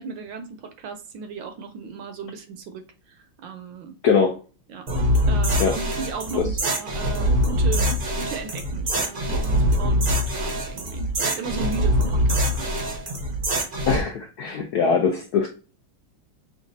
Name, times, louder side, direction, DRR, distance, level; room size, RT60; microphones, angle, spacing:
voice 1, 0.0-4.0 4.7-4.9 5.3-10.1 10.3-12.7, right 5 dB, 75° right, 1.2 m, -35 dB
voice 2, 4.0-4.4 5.6-5.7 6.3-6.4 13.9-15.5, left 5 dB, 75° left, 0.9 m, -21 dB
sound 1, 4.9-14.0, equal, 60° right, 0.5 m, -23 dB
6.0 x 2.4 x 2.6 m
omnidirectional pair, 2.3 m